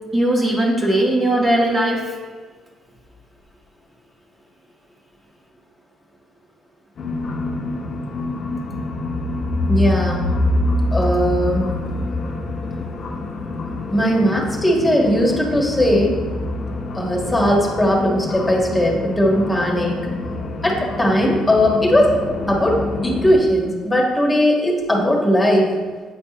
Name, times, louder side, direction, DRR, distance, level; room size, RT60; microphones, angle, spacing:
voice 1, 0.1-2.1, right 1 dB, 25° right, -3 dB, 1.2 m, -18 dB
sound 1, 7.0-23.3, left 2 dB, 50° left, 0.7 m, -26 dB
voice 2, 9.7-10.2 10.9-11.7 13.9-16.2 16.9-20.0 20.6-22.2 22.5-22.8 23.0-25.7, equal, 15° left, -2 dB, 1.5 m, -18 dB
8.6 x 4.4 x 3.0 m, 1.4 s
supercardioid pair, 70°, 0 cm